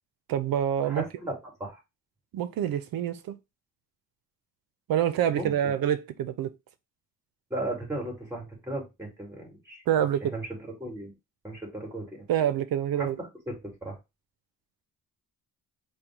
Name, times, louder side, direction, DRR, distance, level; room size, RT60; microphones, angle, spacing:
voice 1, 0.3-1.0 2.3-3.4 4.9-6.5 9.9-10.3 12.3-13.2, right 10 dB, 65° right, 0.7 m, -26 dB
voice 2, 0.8-1.8 5.3-5.7 7.5-9.8 10.2-11.1 11.4-12.3 13.0-14.0, right 1 dB, 10° right, 2.5 m, -36 dB
5.0 x 2.3 x 4.5 m
cardioid pair, 125°, 37 cm